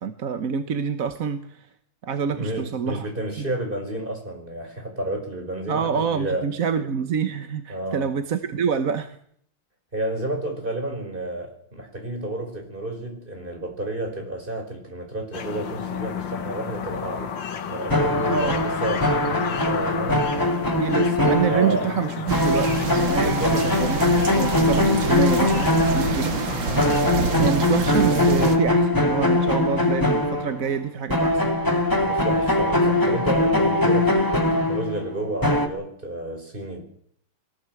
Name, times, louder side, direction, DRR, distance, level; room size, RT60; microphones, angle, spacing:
voice 1, 0.0-1.7 2.0-3.1 3.4-3.5 5.7-9.2 18.3-18.6 20.7-22.7 23.0-26.4 27.4-31.6, right 6 dB, 50° right, 9 dB, 1.3 m, -27 dB
voice 2, 2.3-6.5 7.7-8.1 9.9-17.3 17.7-20.3 21.2-21.9 23.3-23.6 32.0-36.8, right 1 dB, 25° right, 3 dB, 5.5 m, -31 dB
sound 1, 15.3-27.0, left 7 dB, 75° left, 2.2 m, -32 dB
sound 2, 17.9-22.0 22.3-26.4 26.8-30.8 31.1-35.7, left 1 dB, 10° left, 2.2 m, -21 dB
sound 3, 22.3-28.6, right 5 dB, 75° right, 2.6 m, -27 dB
22.5 x 18.5 x 7.8 m, 0.65 s
omnidirectional pair, 2.1 m